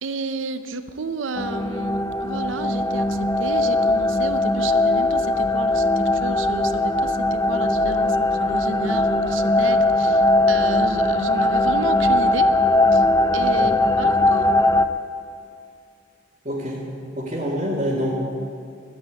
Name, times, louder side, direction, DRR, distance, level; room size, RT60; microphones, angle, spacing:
voice 1, 0.0-12.5 12.9-13.0 13.3-14.5, right 3 dB, 80° right, 10 dB, 0.7 m, -32 dB
sound 1, 1.4-14.9, left 2 dB, 15° left, 0.4 m, -20 dB
voice 2, 16.4-16.8 17.2-18.2, equal, 35° right, -8 dB, 2.4 m, -26 dB
13.0 x 9.8 x 8.2 m, 2.4 s
head